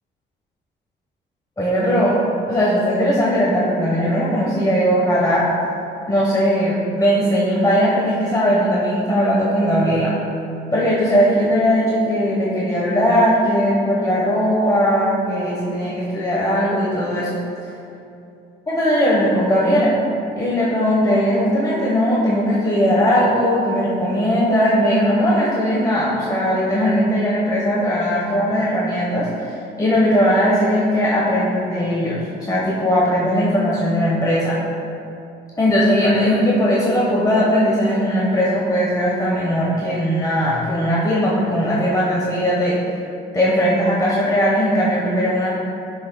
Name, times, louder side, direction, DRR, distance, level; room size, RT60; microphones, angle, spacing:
voice 1, 1.6-2.2 2.5-5.5 6.1-10.1 10.7-17.3 18.7-19.9 20.4-34.6 35.6-42.8 43.3-45.5, equal, 20° left, -6 dB, 1.2 m, -18 dB
10.5 x 6.3 x 2.3 m, 2.7 s
cardioid pair, 90°, 20 cm